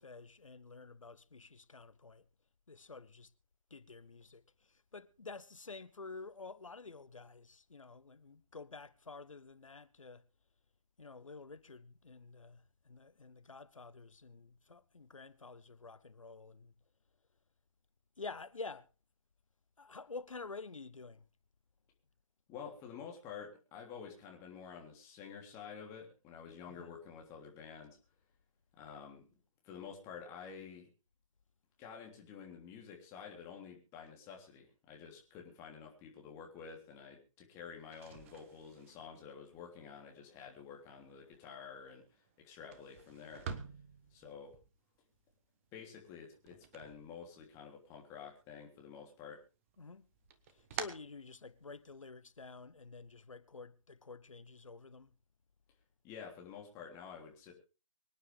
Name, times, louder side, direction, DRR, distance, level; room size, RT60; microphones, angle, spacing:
voice 1, 0.0-2.2 2.7-3.3 3.7-10.2 11.0-16.7 18.2-18.9 19.8-21.2 26.7-26.9 49.8-50.1 50.5-55.1, left 4 dB, 65° left, 1.2 m, -50 dB
voice 2, 22.5-28.0 28.8-29.2 29.6-30.9 31.8-43.5 44.1-44.6 45.7-49.4 56.0-57.5, left 6 dB, 15° left, 3.3 m, -50 dB
sound 1, 37.8-47.8 48.1-49.0 49.3-52.0, right 7 dB, 25° right, 1.2 m, -50 dB
24.5 x 10.0 x 3.5 m
figure-of-eight pair, 145°, 18 cm